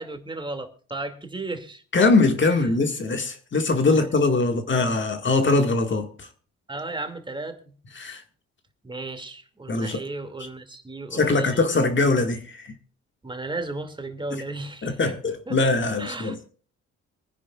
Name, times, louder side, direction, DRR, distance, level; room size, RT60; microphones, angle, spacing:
voice 1, 0.0-1.8 2.5-2.6 6.7-7.7 8.8-11.6 13.2-15.0 15.5-15.6 16.0-16.3, right 2 dB, 15° right, 2.5 m, -34 dB
voice 2, 1.9-6.3 8.0-8.2 9.7-10.0 11.1-12.7 14.3-14.4 14.8-16.4, left 3 dB, 40° left, 1.9 m, -22 dB
25.0 x 9.9 x 2.4 m
cardioid pair, 90°, 30 cm